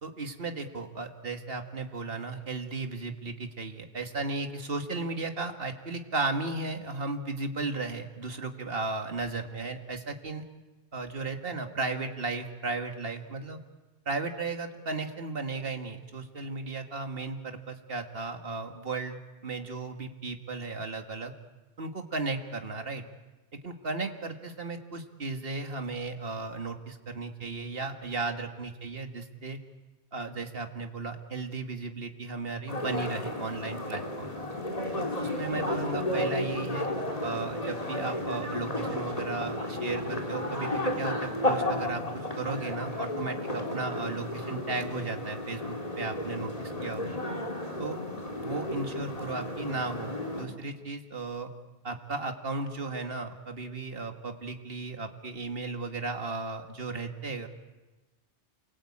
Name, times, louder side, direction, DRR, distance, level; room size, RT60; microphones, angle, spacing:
voice 1, 0.0-10.4 10.9-13.6 14.1-21.3 21.8-23.0 23.6-29.6 30.1-34.3 35.0-36.9 37.2-47.1 47.8-48.0 48.4-51.5 51.8-57.5, right 3 dB, 55° right, 5 dB, 2.2 m, -35 dB
sound 1, 32.7-50.4, left 1 dB, 35° left, 3.6 m, -33 dB
29.0 x 22.5 x 8.7 m, 1.2 s
omnidirectional pair, 1.1 m